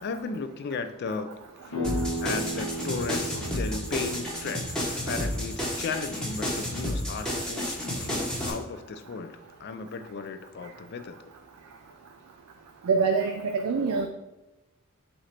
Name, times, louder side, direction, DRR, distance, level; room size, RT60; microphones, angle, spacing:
voice 1, 0.0-11.3, left 4 dB, 50° left, 10 dB, 0.3 m, -35 dB
sound 1, 1.7-7.3, right 1 dB, 70° left, 0.9 m, -37 dB
sound 2, 1.8-8.5, equal, 5° left, 0.9 m, -31 dB
voice 2, 12.9-14.1, right 5 dB, 85° right, 4 dB, 0.4 m, -25 dB
4.5 x 2.5 x 4.2 m, 0.99 s
head